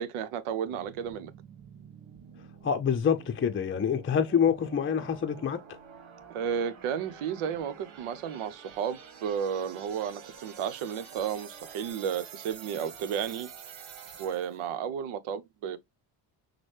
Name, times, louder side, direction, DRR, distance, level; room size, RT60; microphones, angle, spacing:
voice 1, 0.0-1.3 6.3-13.5 14.2-15.8, right 8 dB, 90° right, 0.8 m, -33 dB
sound 1, 0.6-14.7, right 7 dB, 65° right, 1.4 m, -49 dB
voice 2, 2.6-5.8, left 7 dB, 25° left, 0.5 m, -26 dB
6.1 x 2.2 x 3.2 m
cardioid pair, 90°, 49 cm